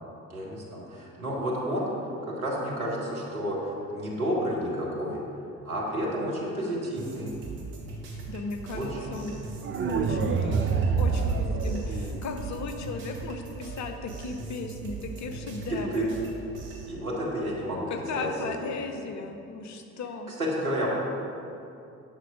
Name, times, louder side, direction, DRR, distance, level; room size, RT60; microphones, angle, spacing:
voice 1, 0.3-1.9 2.2-5.2 5.6-7.3 8.7-9.0 15.9-16.1 16.8-17.9 18.2-18.3 20.4-20.9, equal, 85° right, -4 dB, 1.6 m, -30 dB
sound 1, 7.0-16.9, right 4 dB, 65° right, 1.8 m, -40 dB
voice 2, 8.3-9.3 9.9-16.1 17.9-20.3, left 3 dB, 40° left, 5 dB, 1.0 m, -36 dB
sound 2, 9.6-12.6, right 5 dB, 30° right, 0.7 m, -26 dB
9.6 x 6.0 x 4.9 m, 2.7 s
figure-of-eight pair, 55°, 42 cm